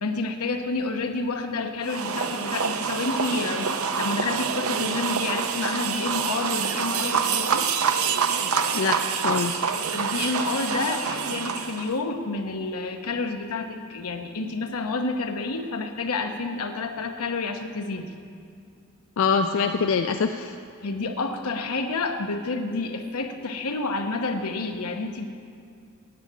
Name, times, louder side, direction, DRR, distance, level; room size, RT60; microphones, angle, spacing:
voice 1, 0.0-7.7 9.9-18.1 20.8-25.3, left 3 dB, 90° left, 5 dB, 0.9 m, -29 dB
sound 1, 1.8-11.9, right 6 dB, 70° right, 0.6 m, -26 dB
voice 2, 8.7-9.6 19.2-20.6, left 5 dB, 60° left, 6 dB, 0.4 m, -24 dB
9.5 x 8.9 x 8.4 m, 2.4 s
head